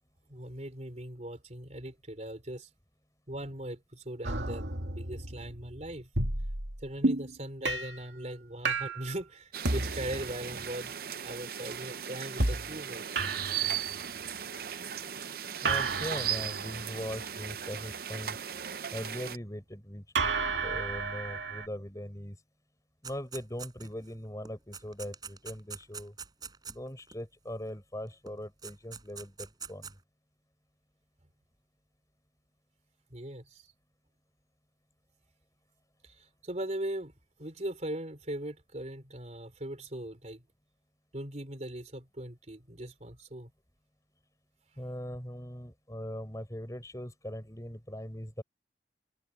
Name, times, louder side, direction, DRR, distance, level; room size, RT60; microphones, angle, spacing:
voice 1, 0.3-2.7 3.3-6.1 6.8-10.9 11.2-13.0 33.1-33.7 36.0-37.1 37.4-40.4 41.1-43.5, right 1 dB, 40° right, 3.4 m, -40 dB
sound 1, 4.2-7.3 7.6-8.0 8.6-9.1 9.6-10.9 12.4-12.8 13.2-14.3 15.6-18.0 20.1-21.7, right 3 dB, 85° right, 2.8 m, -32 dB
sound 2, 9.5-19.4, right 9 dB, 55° right, 0.7 m, -37 dB
voice 2, 15.6-18.4 18.9-22.4 23.0-26.1 26.7-29.9 44.8-48.4, equal, 20° left, 7.1 m, -40 dB
sound 3, 23.0-24.1 24.4-27.2 28.3-28.4 28.6-29.9, right 6 dB, 25° right, 8.0 m, -44 dB
head